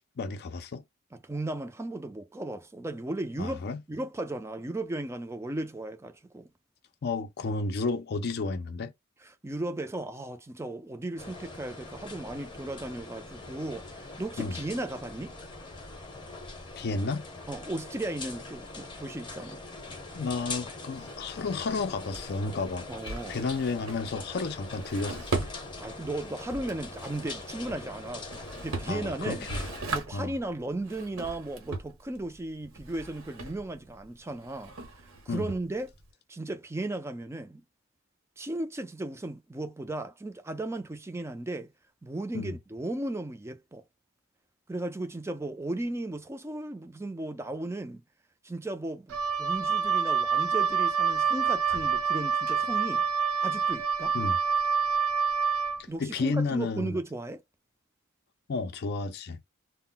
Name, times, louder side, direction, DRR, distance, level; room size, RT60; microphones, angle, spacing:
voice 1, 0.2-0.8 3.4-3.8 7.0-8.9 14.4-14.6 16.8-17.3 20.1-22.9 23.3-25.5 28.9-29.6 30.1-30.3 35.3-35.5 42.3-42.5 54.1-54.4 55.8-57.0 58.5-59.4, left 3 dB, 50° left, 0.4 m, -32 dB
voice 2, 1.1-6.5 9.2-15.3 17.5-19.6 22.9-23.4 25.8-29.5 29.9-34.7 35.3-35.9 36.3-37.6 38.4-41.7 42.0-43.8 44.7-48.0 48.4-53.0 53.4-54.2 55.9-57.4, right 2 dB, 10° right, 0.4 m, -36 dB
sound 1, 11.2-29.8, left 3 dB, 20° left, 0.8 m, -42 dB
Drawer open or close, 20.9-36.1, right 3 dB, 65° right, 0.9 m, -40 dB
Wind instrument woodwind instrument, 49.1-55.8, right 6 dB, 85° right, 0.5 m, -27 dB
2.1 x 2.1 x 3.7 m
head